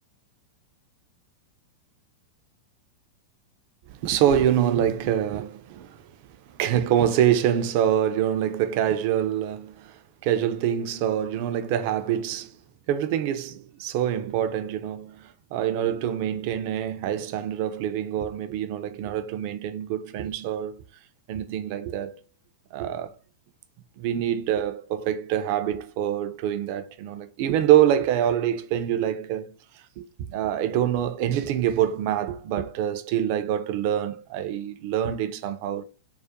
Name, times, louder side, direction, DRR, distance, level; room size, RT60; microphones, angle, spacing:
voice 1, 3.9-12.6 12.9-20.8 21.3-22.2 22.7-23.1 24.0-35.8, right 10 dB, 50° right, 0.3 m, -25 dB
2.4 x 2.1 x 2.6 m
figure-of-eight pair, 95°, 0 cm